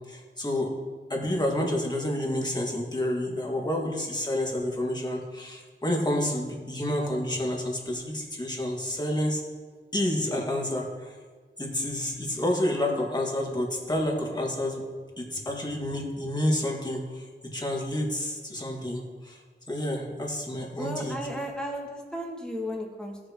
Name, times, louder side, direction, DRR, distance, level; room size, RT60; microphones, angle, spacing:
voice 1, 0.1-0.7 1.1-9.4 9.9-11.2 11.6-14.8 15.2-19.4 19.7-21.2, left 1 dB, 20° left, -1 dB, 2.0 m, -29 dB
voice 2, 20.8-23.3, equal, 5° left, -1 dB, 2.0 m, -34 dB
16.5 x 6.6 x 3.0 m, 1.5 s
wide cardioid pair, 100°, 19 cm